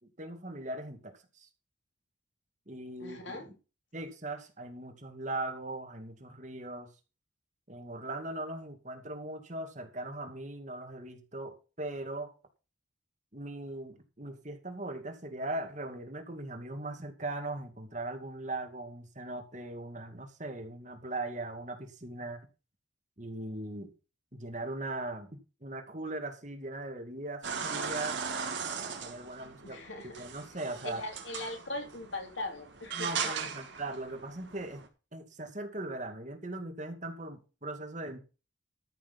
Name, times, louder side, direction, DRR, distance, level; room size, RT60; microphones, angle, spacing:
voice 1, 0.0-1.5 2.7-3.6 3.9-6.9 7.7-12.3 13.3-22.4 23.2-23.9 24.3-28.2 29.0-31.0 32.9-34.8 35.1-38.2, right 2 dB, 40° right, 2.5 m, -39 dB
voice 2, 3.0-3.5 29.6-30.2 30.8-33.3, left 2 dB, 70° left, 3.6 m, -40 dB
sound 1, 27.4-34.9, right 6 dB, 65° right, 2.8 m, -38 dB
13.5 x 6.7 x 5.6 m
head